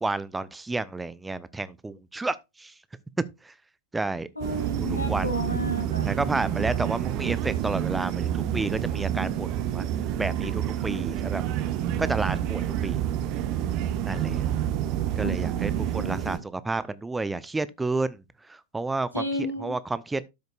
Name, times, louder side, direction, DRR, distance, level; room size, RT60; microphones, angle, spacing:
voice 1, 0.0-2.7 3.4-3.5 3.9-4.3 4.5-5.3 6.0-9.9 10.2-11.4 12.0-13.0 14.0-14.4 15.2-18.2 18.5-19.2 19.6-20.2, right 3 dB, 10° right, 0.5 m, -31 dB
voice 2, 4.4-6.1 15.2-16.2 19.1-19.7, left 1 dB, 85° left, 2.7 m, -32 dB
sound 1, 4.4-16.4, right 11 dB, 40° right, 1.1 m, -28 dB
12.5 x 6.5 x 2.3 m
figure-of-eight pair, 90°, 0 cm